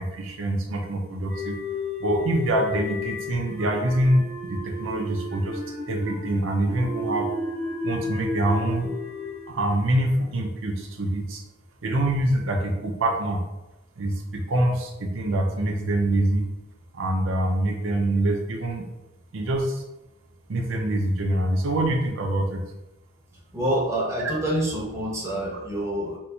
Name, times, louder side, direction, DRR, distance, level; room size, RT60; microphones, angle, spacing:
voice 1, 0.0-1.6 2.0-5.6 5.9-7.3 7.8-8.9 9.5-11.4 11.8-13.4 14.0-16.4 16.9-18.8 19.3-19.8 20.5-22.6, right 1 dB, 90° right, 2 dB, 0.5 m, -25 dB
sound 1, 1.3-10.5, left 2 dB, 85° left, 1.3 m, -33 dB
voice 2, 23.5-26.2, right 1 dB, 15° right, -4 dB, 0.8 m, -27 dB
4.4 x 2.2 x 2.7 m, 0.96 s
head